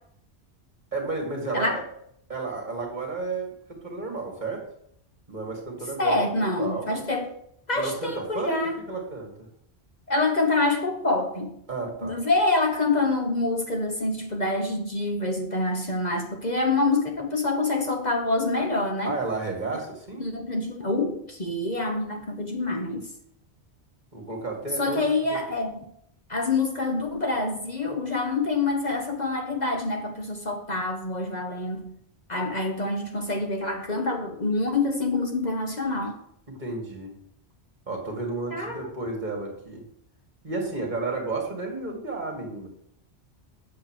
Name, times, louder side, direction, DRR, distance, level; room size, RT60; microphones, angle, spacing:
voice 1, 0.9-1.8 2.3-4.6 5.3-6.3 6.6-6.9 7.7-9.5 11.7-12.2 19.0-20.3 24.1-25.0 25.3-25.4 36.5-37.1 37.9-39.8 40.4-42.7, right 3 dB, 45° right, 1 dB, 2.3 m, -32 dB
voice 2, 6.0-7.3 7.7-8.8 10.1-11.5 12.0-19.2 20.2-23.1 24.8-25.8 26.3-31.8 32.3-36.2 38.5-38.8, left 2 dB, 40° left, 3 dB, 1.2 m, -26 dB
7.6 x 7.3 x 6.3 m, 0.71 s
omnidirectional pair, 1.1 m